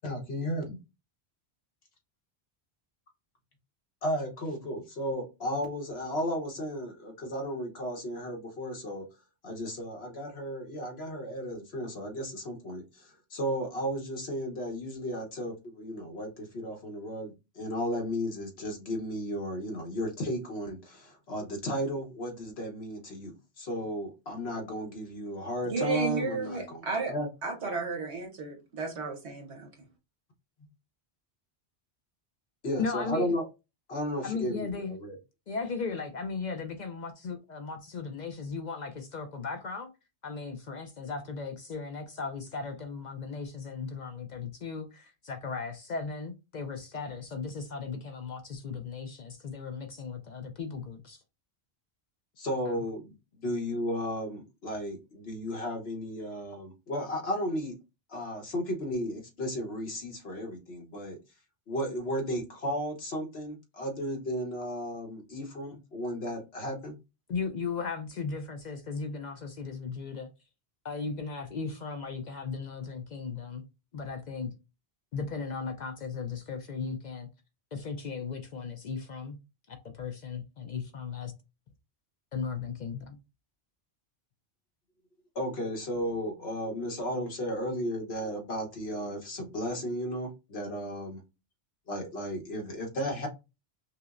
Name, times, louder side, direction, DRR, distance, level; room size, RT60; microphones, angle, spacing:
voice 1, 0.0-0.8 4.0-9.0 9.4-27.3 32.6-33.4 33.9-35.2 52.4-57.7 58.1-61.2 61.7-66.9 85.3-91.2 91.9-93.3, equal, 70° left, 1.3 m, -34 dB
voice 2, 25.7-27.1 27.4-29.7, right 4 dB, 85° right, 1.3 m, -33 dB
voice 3, 32.8-33.3 34.2-35.0 35.5-39.9 40.2-51.2 52.7-52.8 67.3-70.3 70.8-73.6 73.9-74.5 75.1-77.3 77.7-79.4 79.7-81.3 82.3-83.2, left 5 dB, 55° left, 0.5 m, -36 dB
5.5 x 2.0 x 2.4 m
omnidirectional pair, 1.1 m